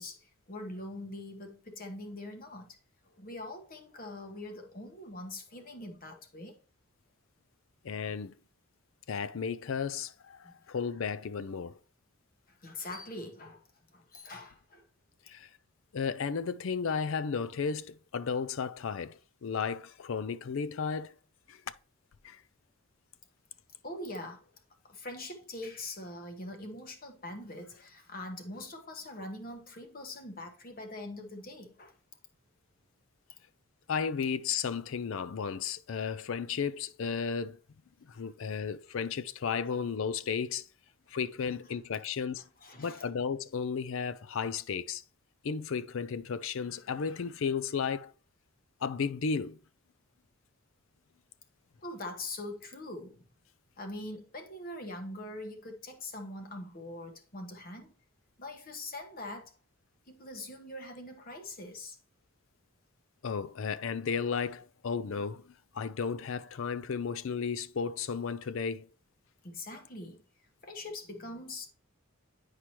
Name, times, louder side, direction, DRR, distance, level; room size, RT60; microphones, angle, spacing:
voice 1, 0.0-2.8 3.0-6.6 10.4-10.5 12.5-13.6 13.9-14.8 23.8-24.5 24.8-31.9 38.4-38.5 42.6-43.1 51.8-53.2 53.8-57.9 58.4-59.5 60.1-62.0 69.4-70.2 70.6-71.7, left 2 dB, 40° left, 1.2 m, -43 dB
voice 2, 7.8-8.3 9.1-11.8 15.3-15.5 15.9-21.1 21.5-21.6 22.2-22.4 33.9-37.6 38.1-40.6 41.1-42.4 42.8-45.0 45.4-48.1 48.8-49.6 63.2-65.5 65.7-68.9, left 6 dB, 65° left, 0.4 m, -34 dB
10.0 x 4.8 x 2.9 m
head